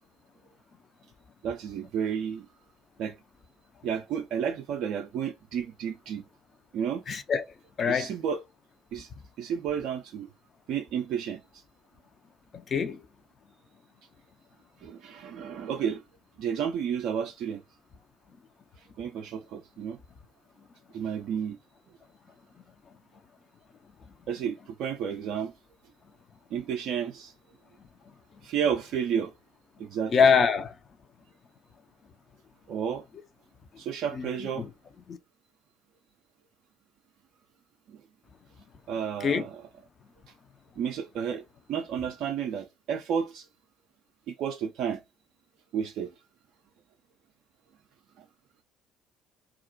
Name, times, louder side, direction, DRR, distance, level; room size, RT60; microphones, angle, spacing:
voice 1, 1.4-2.5 3.0-3.2 3.8-6.2 6.7-7.0 7.9-8.4 8.9-9.1 9.4-10.3 10.7-11.6 14.8-16.0 16.4-17.6 18.8-20.0 20.9-21.6 24.3-25.5 26.5-27.3 28.4-29.3 29.8-30.2 32.7-33.0 33.8-34.7 37.9-38.0 38.9-39.5 40.8-43.5 44.3-45.0 45.7-46.1 48.2-48.3, right 8 dB, 60° right, 0.3 m, -31 dB
voice 2, 7.1-7.4 7.8-8.1 12.5-13.0 30.1-30.8 34.1-34.7 35.1-35.2 39.2-39.5, left 6 dB, 40° left, 0.4 m, -24 dB
2.4 x 2.1 x 2.5 m
figure-of-eight pair, 55°, 0 cm